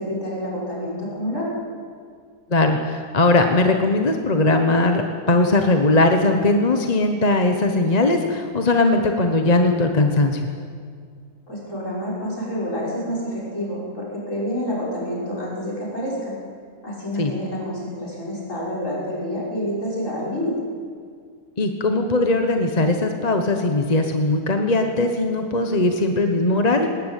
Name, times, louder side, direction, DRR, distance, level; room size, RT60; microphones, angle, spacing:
voice 1, 0.0-1.5 11.5-16.3 16.8-20.5, equal, 45° left, -5 dB, 6.6 m, -28 dB
voice 2, 2.5-10.4 17.2-17.3 21.6-26.9, left 2 dB, 25° left, 5 dB, 1.1 m, -19 dB
19.5 x 19.0 x 8.4 m, 2.1 s
omnidirectional pair, 1.8 m